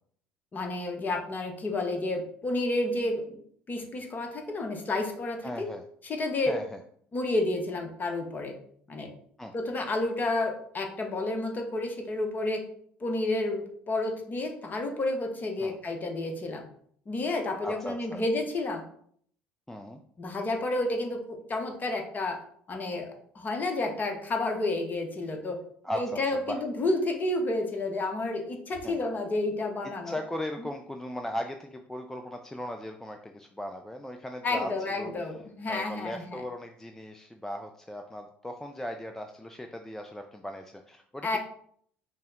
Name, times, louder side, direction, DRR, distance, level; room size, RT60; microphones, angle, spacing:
voice 1, 0.5-3.4 3.7-5.7 6.0-6.6 7.1-8.5 8.9-9.1 9.5-12.6 13.0-16.6 17.1-18.8 20.2-22.4 22.7-25.6 25.9-30.2 34.4-36.4 41.2-41.4, left 2 dB, 30° left, 4 dB, 0.9 m, -30 dB
voice 2, 5.4-5.8 6.5-6.8 9.4-9.5 15.6-15.8 17.6-18.2 19.7-20.0 25.8-26.2 26.5-26.6 28.8-29.0 30.1-34.7 35.0-35.1 35.7-41.4, left 1 dB, 5° left, 5 dB, 0.4 m, -37 dB
5.4 x 2.1 x 3.6 m, 0.62 s
figure-of-eight pair, 60°, 6 cm